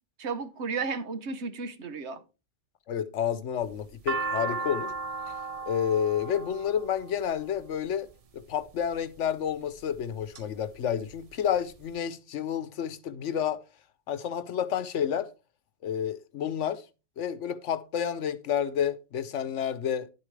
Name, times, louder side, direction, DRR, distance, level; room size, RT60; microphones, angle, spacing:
voice 1, 0.2-2.2, right 4 dB, 70° right, 1.2 m, -33 dB
voice 2, 2.9-4.9 5.7-8.1 8.3-13.6 14.1-15.3 15.8-16.8 17.2-20.1, left 8 dB, 85° left, 1.1 m, -30 dB
sound 1, 3.6-7.9 8.7-9.2 9.8-10.4 10.8-10.9 11.0-11.9, right 3 dB, 45° right, 0.5 m, -35 dB
10.5 x 8.5 x 3.2 m
omnidirectional pair, 1.2 m